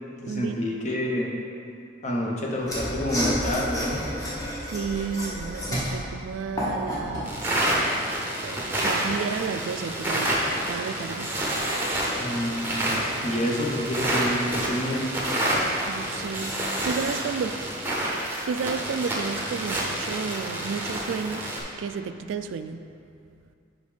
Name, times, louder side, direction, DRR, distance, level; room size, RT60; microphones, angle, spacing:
voice 1, 0.2-1.3 2.0-4.0 12.2-12.9 13.2-15.1, equal, 35° left, -2 dB, 0.9 m, -28 dB
Mechanisms / Sawing, 2.6-7.3, equal, 20° left, 1.1 m, -30 dB
voice 2, 4.6-7.7 8.0-8.1 8.4-10.4 10.7-11.4 15.5-17.7 18.1-21.5 21.8-22.8, right 6 dB, 75° right, 10 dB, 0.3 m, -32 dB
sound 1, 7.2-21.6, right 1 dB, 10° right, 0.8 m, -28 dB
5.4 x 5.1 x 5.0 m, 2.5 s
head